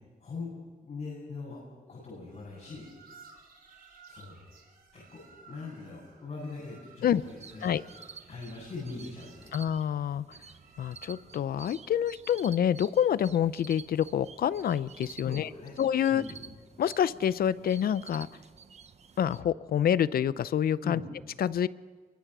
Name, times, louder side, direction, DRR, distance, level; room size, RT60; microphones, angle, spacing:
voice 1, 0.2-0.5 0.8-1.6 1.9-2.9 4.1-4.4 4.9-7.7 8.3-9.6 15.2-15.7 16.1-16.4 20.8-21.0, left 3 dB, 55° left, -6 dB, 7.8 m, -41 dB
sound 1, 2.2-11.5, right 5 dB, 85° right, 4.1 m, -57 dB
sound 2, 7.0-19.4, right 6 dB, 45° right, 1.0 m, -51 dB
voice 2, 9.5-10.2 10.8-15.5 15.8-16.2 16.8-18.3 19.2-21.0 21.4-21.7, left 9 dB, 90° left, 17 dB, 0.6 m, -27 dB
28.0 x 23.5 x 6.2 m, 1.5 s
wide cardioid pair, 140°, 15 cm